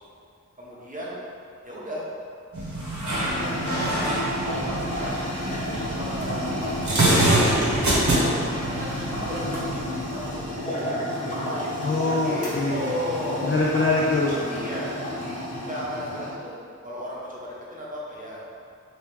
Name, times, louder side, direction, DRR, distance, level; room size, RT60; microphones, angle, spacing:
voice 1, 0.6-1.2 1.6-2.0 3.0-5.2 5.7-7.7 8.5-8.9 9.2-11.9 12.2-13.5 14.5-16.6 16.8-18.4, equal, 25° right, -6 dB, 0.9 m, -35 dB
sound 1, 2.5-10.6, right 1 dB, 65° right, 0.9 m, -25 dB
sound 2, 3.1-16.3, left 1 dB, 25° left, 1.1 m, -31 dB
voice 2, 11.8-12.9 13.4-14.3, left 3 dB, 40° left, -4 dB, 0.4 m, -24 dB
3.0 x 3.0 x 3.4 m, 2.4 s
wide cardioid pair, 45°, 30 cm